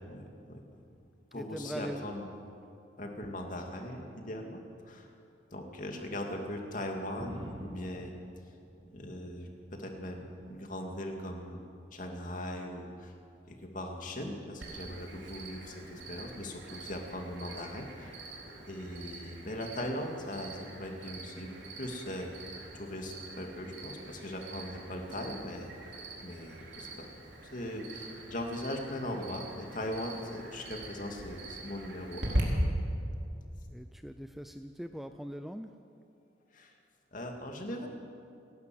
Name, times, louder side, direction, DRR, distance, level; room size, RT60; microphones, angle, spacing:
voice 1, 0.1-0.8 1.3-2.3 3.0-4.6 4.8-5.1 5.5-8.1 8.9-9.5 9.8-11.6 11.9-13.1 13.5-18.2 18.7-21.5 21.8-22.3 22.7-25.7 26.2-27.1 27.5-32.4 36.5-36.8 37.1-37.9, left 1 dB, 45° left, 2 dB, 2.5 m, -39 dB
voice 2, 1.3-2.0 33.7-35.7, equal, ahead, 8 dB, 0.4 m, -41 dB
sound 1, 7.2-9.4 9.8-10.7 11.6-12.0 13.0-13.1, equal, 30° right, 1.9 m, -47 dB
Cricket, 14.6-32.4, right 1 dB, 75° right, 4.1 m, -43 dB
29.0 x 12.0 x 7.8 m, 2.6 s
head